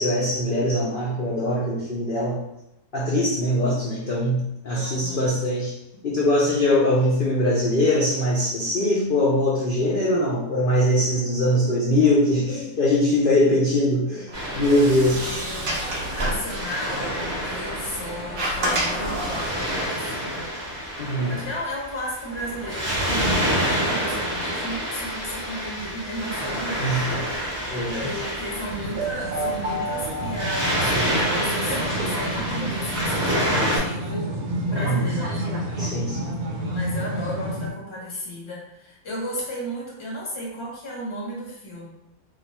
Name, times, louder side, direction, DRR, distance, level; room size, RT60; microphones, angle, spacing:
voice 1, 0.0-2.4 2.9-5.7 6.0-14.3 14.5-15.3 21.0-21.4 26.8-27.3 27.7-28.1 34.7-35.1 35.8-36.3, left 1 dB, 75° left, -5 dB, 0.5 m, -22 dB
voice 2, 4.7-5.3 15.2-17.2 17.4-20.5 21.3-27.2 28.0-34.4 34.7-35.5 36.7-41.8, equal, 25° left, -4 dB, 0.7 m, -34 dB
Waves surf, 14.3-33.8, equal, 15° right, 0.5 m, -28 dB
Sliding door, 14.3-19.9, right 1 dB, 90° right, 0.4 m, -30 dB
sound 1, 28.7-37.7, right 1 dB, 70° right, 1.0 m, -29 dB
2.5 x 2.3 x 4.1 m, 0.83 s
omnidirectional pair, 1.7 m